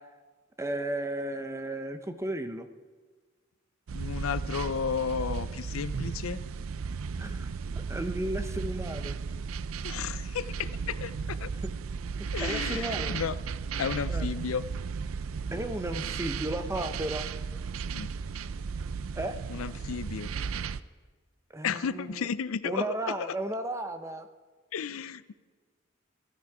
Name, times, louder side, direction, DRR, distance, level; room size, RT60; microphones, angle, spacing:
voice 1, 0.6-2.7 7.2-7.5 7.9-9.2 11.6-11.7 12.2-13.2 14.1-14.3 15.5-17.2 19.2-19.4 21.5-22.3 22.6-24.3, right 1 dB, 15° right, 8 dB, 0.7 m, -34 dB
voice 2, 3.9-6.4 9.8-11.5 12.3-13.4 13.8-14.6 17.9-18.1 19.5-20.3 21.6-23.3 24.7-25.3, left 6 dB, 90° left, 16 dB, 0.5 m, -33 dB
sound 1, 3.9-20.8, right 5 dB, 85° right, 0.4 m, -35 dB
15.5 x 13.0 x 4.8 m, 1.4 s
head